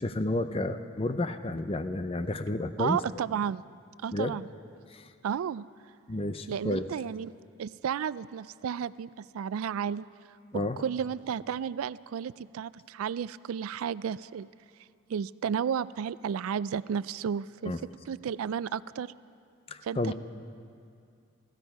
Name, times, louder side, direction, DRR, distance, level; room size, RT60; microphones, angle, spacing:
voice 1, 0.0-3.0 4.1-4.4 4.9-5.1 6.1-6.8 10.5-10.8 17.6-17.8 19.7-20.1, left 2 dB, 25° left, 10 dB, 0.5 m, -31 dB
voice 2, 2.8-3.6 4.0-4.5 5.2-5.7 6.5-7.3 7.6-10.0 10.5-14.5 15.1-17.7 18.1-19.1 19.8-20.1, right 7 dB, 85° right, 18 dB, 0.3 m, -32 dB
17.5 x 15.5 x 5.4 m, 2.3 s
head